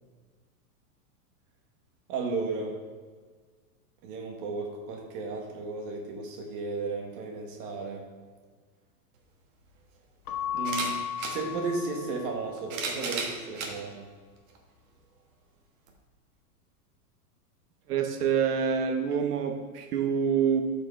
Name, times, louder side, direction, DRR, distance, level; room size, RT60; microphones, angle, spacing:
voice 1, 2.1-2.8 4.0-8.1 10.5-11.0 11.3-14.1, right 3 dB, 35° right, 0 dB, 1.2 m, -34 dB
sound 1, 9.2-9.3 10.6-11.4 12.4-13.7 14.5-14.6 15.9-16.0, right 4 dB, 60° right, 1.5 m, -34 dB
Keyboard (musical) / Bell, 10.2-12.7, left 10 dB, 70° left, 1.2 m, -35 dB
voice 2, 17.9-20.6, right 7 dB, 80° right, 5 dB, 1.2 m, -26 dB
13.0 x 5.0 x 3.2 m, 1.5 s
supercardioid pair, 175°, 46 cm